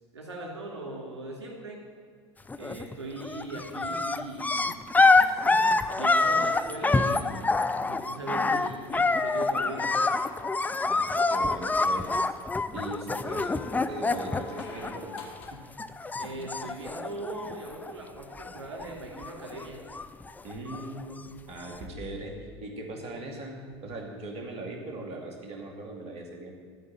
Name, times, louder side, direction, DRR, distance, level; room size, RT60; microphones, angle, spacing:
voice 1, 0.1-1.8 2.6-7.6 7.8-10.0 16.2-19.9 22.9-23.0, right 2 dB, 85° right, -1 dB, 2.8 m, -39 dB
sound 1, 2.5-2.9 3.2-15.5 15.8-17.9 18.2-18.9 19.2-21.0 21.7-21.8, left 3 dB, 10° left, 0.5 m, -26 dB
sound 2, 8.9-11.4 13.2-15.7 17.4-17.5, left 3 dB, 70° left, 1.6 m, -46 dB
voice 2, 10.9-12.1 12.7-15.1 15.5-15.6 20.4-22.3 22.6-26.6, right 2 dB, 45° right, 2 dB, 2.5 m, -39 dB
13.0 x 5.0 x 8.8 m, 2.1 s
hypercardioid pair, 75°, 14 cm